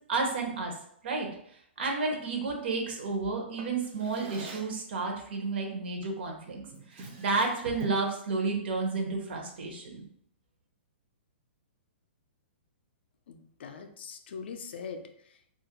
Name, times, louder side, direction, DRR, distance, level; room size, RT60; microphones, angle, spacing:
voice 1, 0.1-0.7 1.0-1.3 1.8-6.6 6.9-10.0, right 3 dB, 65° right, 2 dB, 0.6 m, -31 dB
Drawer open or close, 3.6-4.8 6.0-6.2 6.7-8.1, right 4 dB, 25° right, 0.3 m, -45 dB
voice 2, 13.3-15.5, left 5 dB, 65° left, 7 dB, 0.3 m, -42 dB
2.3 x 2.0 x 2.8 m, 0.68 s
hypercardioid pair, 165°, 6 cm